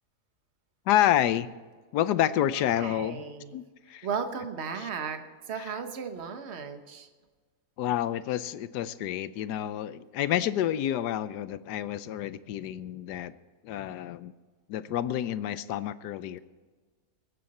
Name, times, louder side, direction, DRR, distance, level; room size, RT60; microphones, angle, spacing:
voice 1, 0.9-1.5 1.9-3.2 3.5-3.6 3.9-4.1 4.8-4.9 5.6-5.7 7.8-13.3 13.6-14.3 14.7-16.4, left 11 dB, 90° left, 15 dB, 1.2 m, -28 dB
voice 2, 2.7-3.5 4.0-7.1, right 6 dB, 45° right, 7 dB, 1.3 m, -35 dB
22.0 x 9.7 x 4.2 m, 1.4 s
omnidirectional pair, 1.7 m